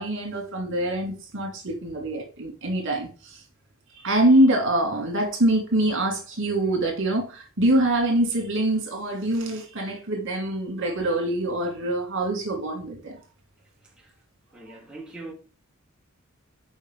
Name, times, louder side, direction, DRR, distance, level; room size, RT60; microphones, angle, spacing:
voice 1, 0.0-3.4 4.0-13.2, right 1 dB, 60° right, 2.3 m, -24 dB
voice 2, 14.5-15.3, right 2 dB, 5° right, 1.2 m, -41 dB
6.3 x 4.8 x 3.7 m
head